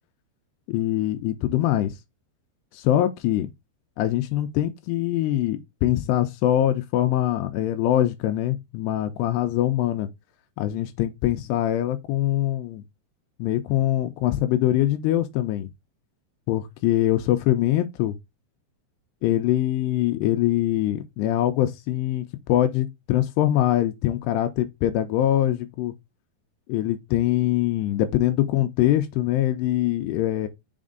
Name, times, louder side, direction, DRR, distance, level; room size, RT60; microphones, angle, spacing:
voice 1, 0.7-1.9 2.7-3.5 4.0-10.1 10.6-12.8 13.4-15.7 16.5-18.2 19.2-25.9 26.7-30.5, left 13 dB, 85° left, 2.7 m, -23 dB
6.2 x 4.3 x 3.7 m
omnidirectional pair, 4.8 m